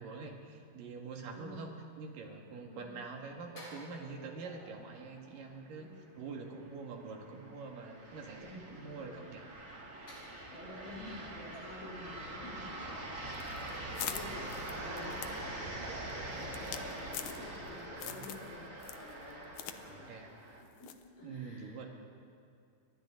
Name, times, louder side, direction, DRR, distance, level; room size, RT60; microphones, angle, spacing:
voice 1, 0.0-1.7 2.0-9.5 15.9-16.2 18.0-18.3 19.8-20.3 21.2-21.9, right 4 dB, 65° right, 1 dB, 3.6 m, -45 dB
voice 2, 1.3-1.7 2.6-2.9 5.7-5.9 8.4-9.3 10.5-20.1 20.8-21.8, left 2 dB, 90° left, -7 dB, 7.9 m, -50 dB
sound 1, 3.6-6.2 10.1-13.3 13.6-13.8, equal, 55° left, 6.8 m, -57 dB
sound 2, 5.7-20.6, right 1 dB, 25° right, 2.0 m, -44 dB
sound 3, 13.3-17.7 18.0-18.5 18.8-19.8 20.1-20.2 20.8-21.1, left 11 dB, 70° left, 2.0 m, -43 dB
30.0 x 24.0 x 3.9 m, 2.4 s
omnidirectional pair, 4.3 m